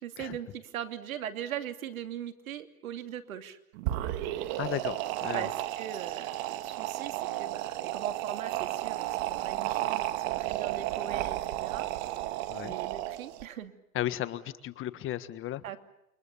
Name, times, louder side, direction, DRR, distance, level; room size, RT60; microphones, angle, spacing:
voice 1, 0.0-3.6 4.0-4.6 5.3-11.9 12.6-13.7 15.6-15.8, right 10 dB, 80° right, 8 dB, 2.9 m, -40 dB
sound 1, 3.7-13.4, right 15 dB, 50° right, 2.2 m, -33 dB
voice 2, 4.6-5.5 12.5-12.7 13.9-15.6, left 13 dB, 30° left, 13 dB, 1.6 m, -35 dB
29.0 x 24.5 x 7.1 m, 0.81 s
hypercardioid pair, 130°, 41 cm